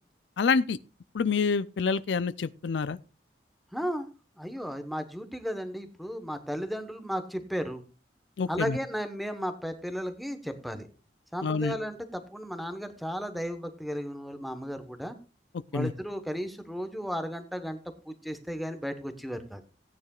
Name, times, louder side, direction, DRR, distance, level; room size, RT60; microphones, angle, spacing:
voice 1, 0.4-0.8 1.1-3.0 8.4-8.8 11.4-11.8 15.7-15.9, left 5 dB, 80° left, 0.5 m, -27 dB
voice 2, 3.7-4.1 4.4-7.8 8.5-10.9 11.3-15.2 15.7-17.8 18.1-19.6, equal, ahead, 1.1 m, -34 dB
17.0 x 9.4 x 2.4 m
head